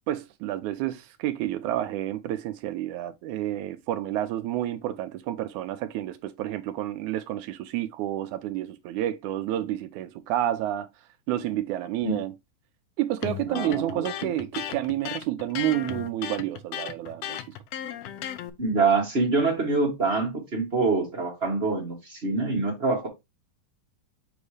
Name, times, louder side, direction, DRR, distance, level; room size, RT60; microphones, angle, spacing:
voice 1, 0.1-10.9 11.3-12.3 13.0-17.4, right 13 dB, 80° right, 1.9 m, -30 dB
Electric guitar, 13.2-18.5, left 10 dB, 75° left, 1.5 m, -35 dB
voice 2, 13.5-14.3 18.6-23.1, right 3 dB, 50° right, 0.7 m, -25 dB
7.1 x 2.7 x 4.8 m
omnidirectional pair, 3.7 m